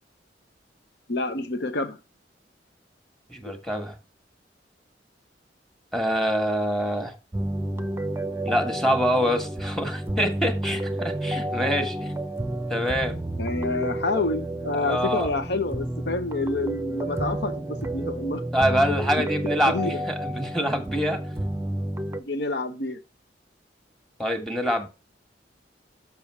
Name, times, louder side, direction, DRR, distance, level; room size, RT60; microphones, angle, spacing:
voice 1, 1.1-2.0 13.4-18.4 19.0-20.0 22.1-23.0, left 2 dB, 65° left, 1.0 m, -28 dB
voice 2, 3.3-4.0 5.9-7.2 8.4-12.1 12.7-13.2 14.9-15.3 18.5-21.2 24.2-24.9, equal, ahead, 1.5 m, -25 dB
sound 1, 7.3-22.2, right 1 dB, 15° right, 0.6 m, -30 dB
6.9 x 6.2 x 4.8 m
head